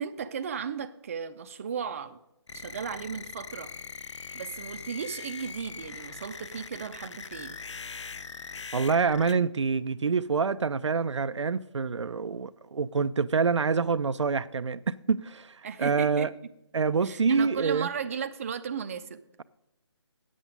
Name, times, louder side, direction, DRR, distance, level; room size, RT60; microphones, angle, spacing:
voice 1, 0.0-2.2 2.5-3.7 4.3-7.6 15.6-16.3 17.0-19.4, right 7 dB, 30° right, 0.5 m, -35 dB
sound 1, 2.5-9.3, left 5 dB, 80° left, 0.4 m, -41 dB
voice 2, 8.7-16.3 16.7-17.9, right 5 dB, 85° right, 0.4 m, -26 dB
9.2 x 7.5 x 5.2 m
figure-of-eight pair, 150°, 15 cm